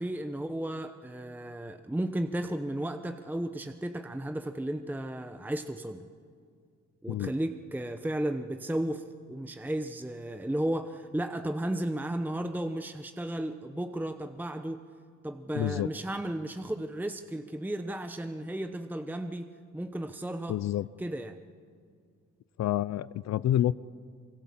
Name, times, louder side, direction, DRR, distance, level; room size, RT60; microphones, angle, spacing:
voice 1, 0.0-6.1 7.0-14.8 15.2-19.5 19.7-20.6 21.0-21.4, right 1 dB, 5° right, 8 dB, 0.9 m, -34 dB
voice 2, 15.6-15.9 20.5-20.9 22.6-23.7, left 12 dB, 60° left, 18 dB, 0.6 m, -28 dB
25.0 x 23.0 x 7.4 m, 2.2 s
cardioid pair, 90°, 30 cm